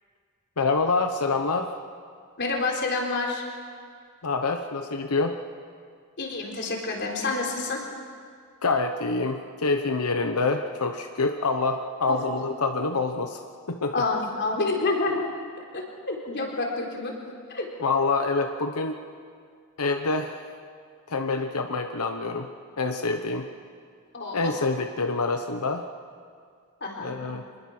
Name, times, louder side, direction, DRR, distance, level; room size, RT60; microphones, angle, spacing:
voice 1, 0.6-1.7 4.2-5.4 8.6-13.4 13.7-14.0 17.8-19.0 19.8-20.5 21.1-22.5 22.8-23.5 24.3-25.9 27.0-27.5, left 3 dB, 80° left, 5 dB, 1.0 m, -26 dB
voice 2, 2.4-3.4 6.2-7.8 12.1-12.4 13.9-15.3 15.7-17.1 17.5-17.7 24.1-24.5 26.8-27.1, left 3 dB, 55° left, 0 dB, 3.9 m, -28 dB
25.5 x 21.0 x 6.2 m, 2.1 s
head